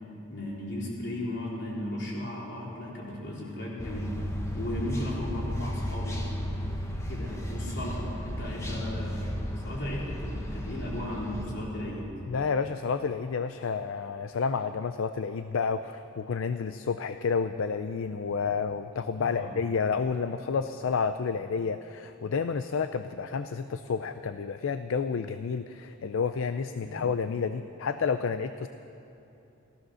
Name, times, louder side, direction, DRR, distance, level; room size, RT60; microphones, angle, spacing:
voice 1, 0.3-4.1 4.5-6.2 7.1-9.3 9.6-12.1 19.2-19.5 26.8-27.1, left 1 dB, 55° left, -4 dB, 3.7 m, -35 dB
sound 1, 3.8-11.5, equal, 15° left, 1.3 m, -34 dB
voice 2, 12.3-28.7, left 5 dB, 75° left, 11 dB, 0.4 m, -30 dB
15.5 x 14.5 x 6.3 m, 2.8 s
head